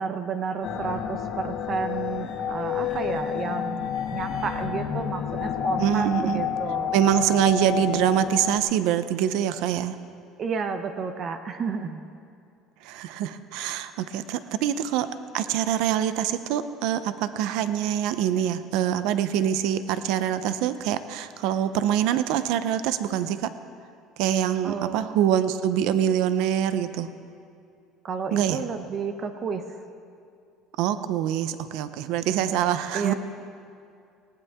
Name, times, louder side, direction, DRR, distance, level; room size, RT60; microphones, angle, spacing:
voice 1, 0.0-6.9 10.4-12.0 24.6-25.0 28.0-29.6 32.9-33.1, right 5 dB, 35° right, 7 dB, 0.8 m, -31 dB
sound 1, 0.6-8.6, left 9 dB, 50° left, 1.7 m, -30 dB
voice 2, 5.8-6.4 6.9-10.0 12.8-15.1 15.3-23.5 24.2-27.1 28.3-28.6 30.8-33.1, right 10 dB, 70° right, 12 dB, 0.7 m, -25 dB
19.0 x 18.0 x 3.6 m, 2.4 s
cardioid pair, 155°, 0 cm